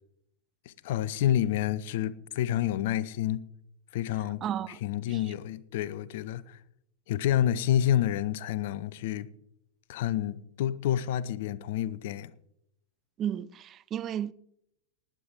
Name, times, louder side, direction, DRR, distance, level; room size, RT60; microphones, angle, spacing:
voice 1, 0.7-3.4 3.9-4.4 4.8-6.6 7.1-9.3 9.9-12.3, left 11 dB, 50° left, 0.6 m, -29 dB
voice 2, 4.4-4.8 5.1-5.2 13.2-14.3, right 10 dB, 30° right, 0.4 m, -33 dB
19.0 x 9.1 x 3.8 m
figure-of-eight pair, 90°, 0 cm